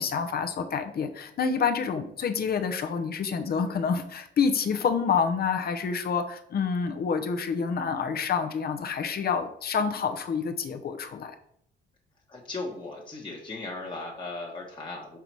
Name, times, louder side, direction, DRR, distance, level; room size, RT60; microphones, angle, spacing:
voice 1, 0.0-11.3, left 6 dB, 50° left, 6 dB, 0.8 m, -28 dB
voice 2, 12.3-15.2, left 3 dB, 25° left, -2 dB, 1.2 m, -37 dB
5.8 x 3.9 x 4.6 m, 0.73 s
cardioid pair, 90°, 20 cm